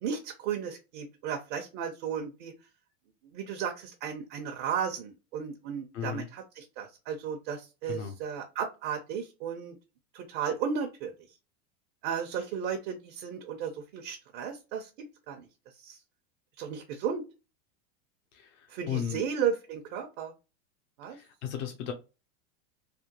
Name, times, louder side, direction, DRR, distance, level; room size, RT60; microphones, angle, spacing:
voice 1, 0.0-2.5 3.3-9.8 10.1-11.1 12.0-14.9 15.3-15.5 15.8-16.0 16.6-17.2 18.7-20.3 21.0-21.2, right 7 dB, 55° right, 3 dB, 0.8 m, -34 dB
voice 2, 5.9-6.3 7.9-8.1 18.3-19.2 21.1-21.9, left 9 dB, 70° left, 3 dB, 0.8 m, -35 dB
3.4 x 2.2 x 2.9 m, 0.29 s
supercardioid pair, 115°, 38 cm